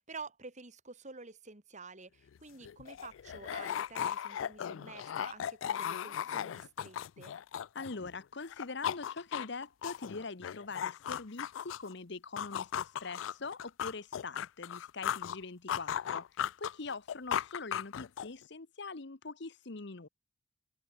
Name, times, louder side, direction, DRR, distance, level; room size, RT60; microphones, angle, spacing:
voice 1, 0.0-7.3, right 4 dB, 40° right, 2.9 m, -49 dB
sound 1, 2.3-2.4 2.6-8.1 8.4-11.9 12.4-15.4 15.7-18.4, left 9 dB, 90° left, 0.4 m, -37 dB
voice 2, 7.7-20.1, left 3 dB, 65° left, 1.1 m, -43 dB
head